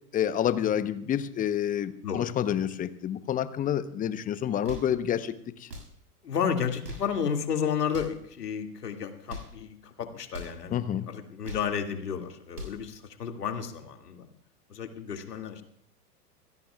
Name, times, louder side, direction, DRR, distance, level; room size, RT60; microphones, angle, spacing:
voice 1, 0.1-5.7 10.7-11.1, left 10 dB, 15° left, 13 dB, 0.8 m, -28 dB
sound 1, 4.6-5.0 5.6-6.0 6.7-7.2 7.8-8.2 9.1-9.6 10.3-10.6 11.2-11.8 12.3-12.8, left 1 dB, 85° right, 6.9 m, -42 dB
voice 2, 6.2-14.3 14.7-15.6, left 7 dB, 75° left, 4 dB, 2.3 m, -32 dB
26.5 x 16.5 x 2.3 m, 0.70 s
figure-of-eight pair, 100°, 48 cm